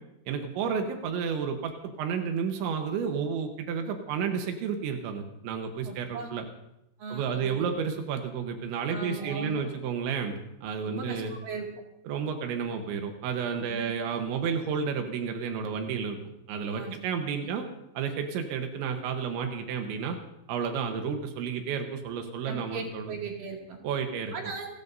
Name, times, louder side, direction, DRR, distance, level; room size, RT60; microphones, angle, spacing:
voice 1, 0.3-6.4 7.1-11.3 12.1-16.2 16.5-17.7 17.9-20.2 20.5-23.1 23.8-24.3, right 6 dB, 85° right, 4 dB, 3.5 m, -31 dB
voice 2, 5.9-6.3 7.0-7.7 8.9-9.7 10.8-11.7 13.6-13.9 16.7-17.0 17.4-17.5 22.5-23.8 24.3-24.7, right 4 dB, 55° right, 0 dB, 3.5 m, -38 dB
29.5 x 13.5 x 2.7 m, 0.86 s
omnidirectional pair, 5.1 m